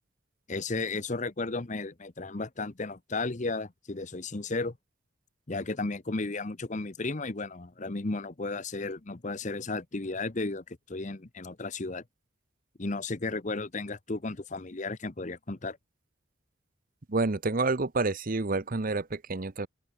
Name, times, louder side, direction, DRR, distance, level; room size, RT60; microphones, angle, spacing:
voice 1, 0.5-4.8 5.5-12.0 12.8-15.8, left 3 dB, 35° left, 0.9 m, -34 dB
voice 2, 17.1-19.7, right 3 dB, 40° right, 0.9 m, -28 dB
open air
head